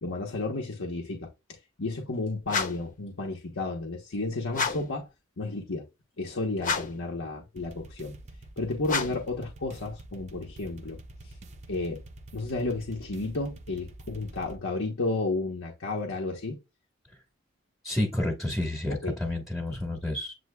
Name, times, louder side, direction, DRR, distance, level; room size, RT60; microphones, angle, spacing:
voice 1, 0.0-5.1 5.4-5.9 6.2-8.2 8.6-11.0 11.7-12.0 12.3-16.6 18.9-19.2, left 2 dB, 70° left, 1.0 m, -32 dB
sound 1, 2.4-2.9 4.5-5.0 6.6-7.1 8.8-9.3, left 5 dB, 40° left, 0.9 m, -30 dB
sound 2, 7.6-14.6, right 1 dB, 35° right, 0.6 m, -47 dB
voice 2, 17.8-20.3, left 1 dB, ahead, 1.2 m, -30 dB
7.7 x 2.7 x 2.3 m
head